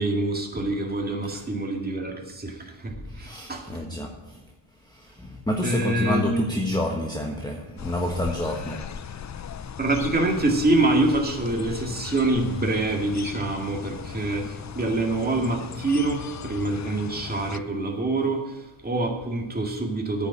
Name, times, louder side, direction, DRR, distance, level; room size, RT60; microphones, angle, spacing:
voice 1, 0.0-3.8 5.6-6.4 9.8-20.3, right 2 dB, 20° right, 2.1 m, -26 dB
voice 2, 2.9-4.5 4.8-9.2 14.9-15.1, left 1 dB, 10° left, 1.3 m, -30 dB
sound 1, 7.8-17.6, left 8 dB, 40° left, 0.5 m, -38 dB
9.5 x 7.3 x 8.8 m
cardioid pair, 90°, 47 cm